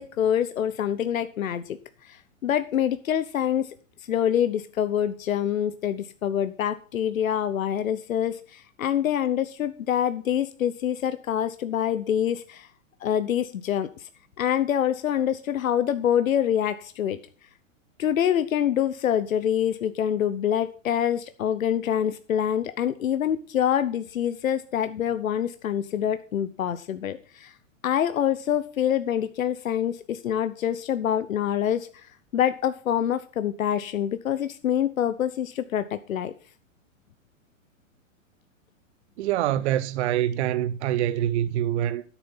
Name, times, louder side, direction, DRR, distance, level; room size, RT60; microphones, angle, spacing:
voice 1, 0.0-1.8 2.0-3.7 4.1-12.7 13.0-13.9 14.4-17.2 18.0-27.5 27.8-32.1 32.3-36.3, left 9 dB, 85° left, 0.9 m, -26 dB
voice 2, 39.2-42.0, right 12 dB, 55° right, 0.8 m, -25 dB
12.5 x 7.2 x 5.6 m
hypercardioid pair, 125°, 40 cm